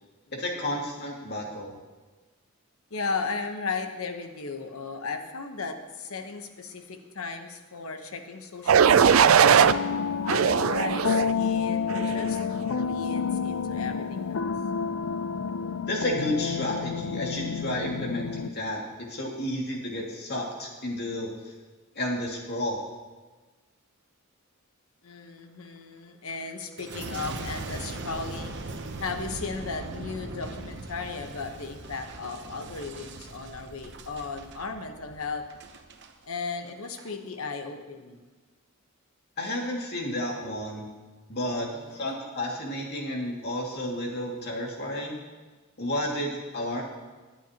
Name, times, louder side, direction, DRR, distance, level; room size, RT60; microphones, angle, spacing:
voice 1, 0.3-1.7 15.9-18.8 19.1-21.5 22.0-22.8 39.4-40.9 41.3-45.2 45.8-46.8, left 1 dB, 50° left, -1 dB, 2.3 m, -31 dB
voice 2, 2.9-9.7 10.3-14.4 25.0-28.6 29.0-35.5 36.2-38.3 41.5-42.0 45.8-46.0, left 4 dB, 90° left, 6 dB, 1.1 m, -36 dB
sound 1, 8.7-9.7 10.3-11.3 11.9-12.3, right 7 dB, 75° right, 0.4 m, -19 dB
sound 2, 9.4-18.5, left 6 dB, 70° left, 0.4 m, -29 dB
Boom, 26.8-36.1 36.7-37.1, right 2 dB, 55° right, 0.9 m, -40 dB
20.5 x 9.2 x 3.0 m, 1.3 s
head